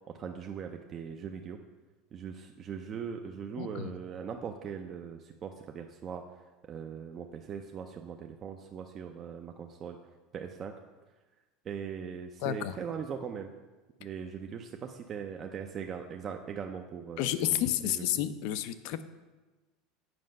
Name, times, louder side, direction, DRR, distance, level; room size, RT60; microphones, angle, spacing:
voice 1, 0.1-1.6 2.1-6.2 6.7-10.0 10.3-10.7 11.6-13.5 14.0-18.2, right 7 dB, 30° right, 4 dB, 0.5 m, -40 dB
voice 2, 3.6-3.9 12.4-12.8 17.2-19.0, left 12 dB, 65° left, 13 dB, 0.5 m, -31 dB
7.7 x 5.2 x 5.2 m, 1.2 s
supercardioid pair, 140°, 0 cm